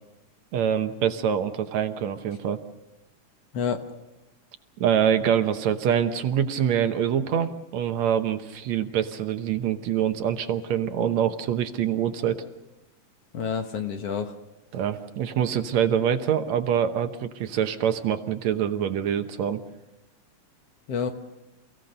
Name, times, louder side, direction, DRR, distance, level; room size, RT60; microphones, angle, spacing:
voice 1, 0.5-2.6 4.8-12.4 14.7-19.6, right 9 dB, 70° right, 8 dB, 2.2 m, -25 dB
voice 2, 13.3-14.4 20.9-21.1, left 6 dB, 60° left, 6 dB, 2.1 m, -28 dB
28.0 x 16.5 x 6.7 m, 1.0 s
omnidirectional pair, 3.5 m